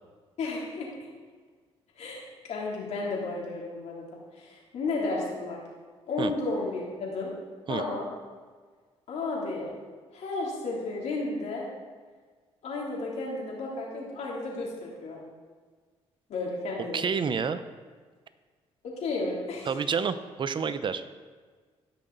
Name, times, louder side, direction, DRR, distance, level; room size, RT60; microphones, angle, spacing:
voice 1, 0.4-1.1 2.0-4.0 4.3-5.6 6.1-7.3 7.7-8.1 9.1-9.7 10.1-11.7 12.6-15.2 16.3-17.0 18.8-19.7, left 3 dB, 70° left, -3 dB, 3.2 m, -33 dB
voice 2, 16.9-17.6 19.7-21.0, right 6 dB, 45° right, 12 dB, 0.7 m, -29 dB
16.5 x 6.1 x 4.0 m, 1.5 s
cardioid pair, 75°, 12 cm